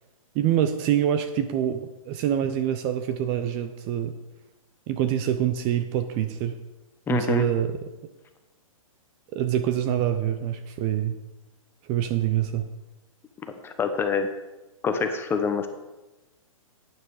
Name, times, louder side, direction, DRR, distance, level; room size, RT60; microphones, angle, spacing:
voice 1, 0.3-4.1 4.9-6.6 7.1-7.8 9.3-11.1 11.9-12.7, right 10 dB, 30° right, 10 dB, 0.7 m, -25 dB
voice 2, 7.1-7.4 13.6-14.3 14.8-15.7, left 5 dB, 15° left, 7 dB, 1.0 m, -25 dB
11.5 x 9.3 x 4.9 m, 1.0 s
hypercardioid pair, 145°, 18 cm